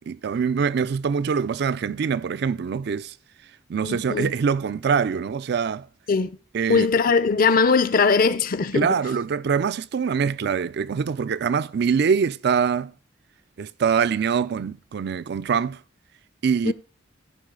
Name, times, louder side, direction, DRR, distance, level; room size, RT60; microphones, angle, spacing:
voice 1, 0.0-3.1 3.7-5.9 6.5-6.9 8.7-12.9 13.6-15.8 16.4-16.7, right 6 dB, 60° right, 0.4 m, -24 dB
voice 2, 3.8-4.3 6.1-6.3 6.7-9.0 16.6-16.7, left 5 dB, 50° left, 0.5 m, -20 dB
14.5 x 5.5 x 3.8 m
head